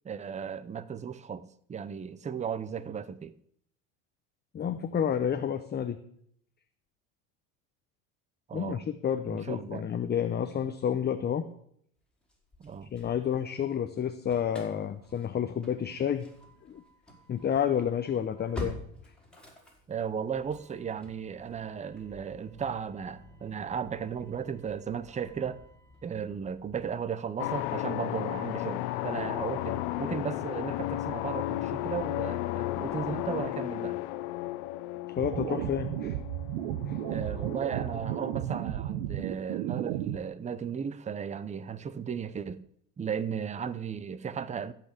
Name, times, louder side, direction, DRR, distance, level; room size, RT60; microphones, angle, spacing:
voice 1, 0.0-3.4 8.5-8.8 9.3-9.8 12.6-12.9 19.9-25.6 26.0-34.0 37.1-42.6 43.0-44.7, right 7 dB, 15° right, 0.7 m, -35 dB
voice 2, 4.5-6.0 8.5-11.5 12.9-16.3 16.7-16.8 17.3-18.8 35.1-36.2 36.9-37.0, left 8 dB, 25° left, 0.8 m, -30 dB
Engine starting / Slam, 12.3-13.7 14.0-27.0, left 1 dB, ahead, 4.5 m, -48 dB
sound 1, 27.4-38.8, left 16 dB, 70° left, 1.0 m, -34 dB
sound 2, 35.2-40.2, right 12 dB, 75° right, 1.0 m, -33 dB
15.0 x 5.9 x 8.4 m
supercardioid pair, 105°, 41 cm